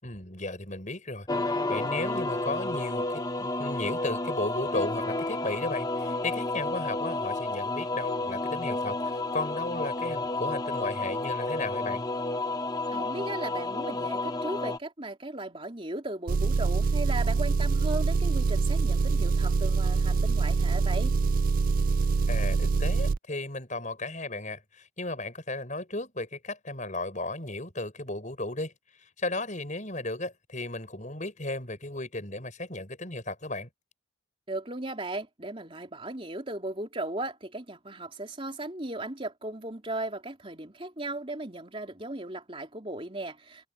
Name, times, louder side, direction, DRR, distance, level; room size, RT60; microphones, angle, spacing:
voice 1, 0.0-12.0 22.3-28.7 29.0-33.7, left 2 dB, 35° left, 6.4 m, -35 dB
sound 1, 1.3-14.8, left 2 dB, 20° left, 0.9 m, -31 dB
voice 2, 12.9-21.2 34.5-43.7, right 2 dB, 25° right, 3.4 m, -36 dB
Engine, 16.3-23.2, right 4 dB, 45° right, 0.3 m, -25 dB
head